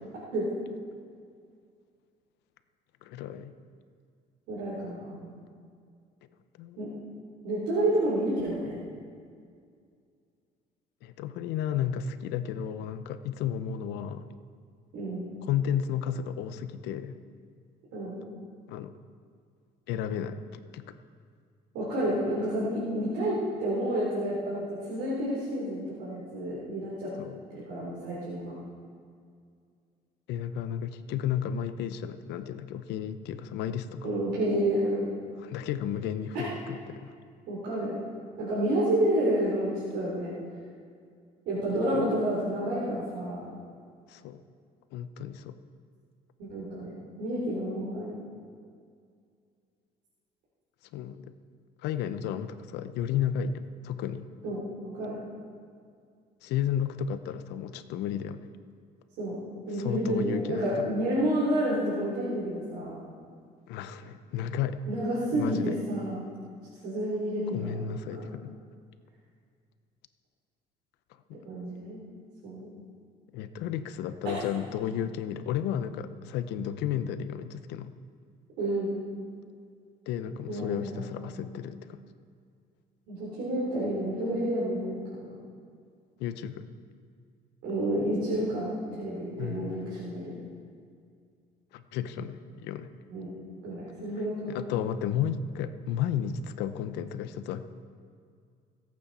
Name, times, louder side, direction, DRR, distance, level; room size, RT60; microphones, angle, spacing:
voice 1, 3.0-3.5 6.6-6.8 11.0-14.3 15.4-17.2 18.7-18.9 19.9-20.9 27.2-27.4 30.3-34.1 35.4-37.1 41.9-42.0 44.1-44.4 44.9-45.6 50.9-51.3 51.8-54.3 56.4-58.4 59.7-60.9 63.7-64.8 65.3-65.8 67.5-68.5 73.3-77.9 80.1-82.0 86.2-86.7 89.4-89.7 91.7-92.9 94.5-97.7, left 9 dB, 90° left, 11 dB, 0.7 m, -33 dB
voice 2, 4.5-5.4 6.8-6.9 7.4-8.7 14.9-15.2 17.9-18.2 21.7-27.1 27.5-28.6 34.0-35.1 36.3-36.5 37.5-38.0 38.4-40.4 41.5-43.4 46.4-46.9 47.2-48.1 54.4-54.6 54.9-55.1 59.2-59.4 59.7-63.0 64.9-66.3 66.8-67.7 68.1-68.3 71.4-72.0 72.4-72.7 74.2-74.4 78.6-79.0 80.5-81.7 83.1-85.3 87.6-90.3 93.1-93.3 93.6-94.6, right 1 dB, 90° right, -8 dB, 3.6 m, -30 dB
25.5 x 8.5 x 4.2 m, 2.2 s
cardioid pair, 110°, 17 cm